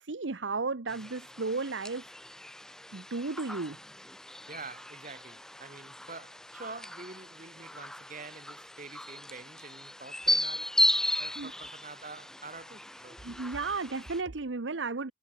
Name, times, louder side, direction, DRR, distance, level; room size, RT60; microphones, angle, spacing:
voice 1, 0.0-2.1 2.9-3.8 11.4-11.5 13.2-15.1, right 3 dB, 85° right, 1.0 m, -34 dB
sound 1, 0.9-14.2, left 1 dB, 5° left, 0.3 m, -35 dB
voice 2, 4.5-10.8 11.2-13.2, right 3 dB, 40° right, 4.5 m, -47 dB
head